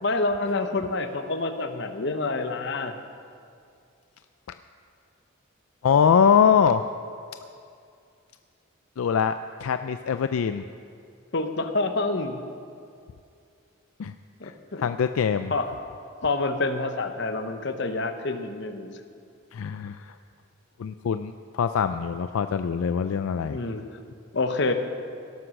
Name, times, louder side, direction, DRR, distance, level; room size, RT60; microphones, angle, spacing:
voice 1, 0.0-2.9 11.3-12.4 14.4-14.9 15.5-15.7 16.2-19.0 23.5-23.8 24.3-24.7, left 3 dB, 55° left, 8 dB, 0.9 m, -27 dB
voice 2, 5.8-6.8 9.0-10.6 14.0-14.1 14.4-14.5 14.8-15.5 19.5-20.1 20.8-23.6, left 7 dB, 85° left, 10 dB, 0.4 m, -23 dB
17.0 x 7.9 x 6.4 m, 2.4 s
head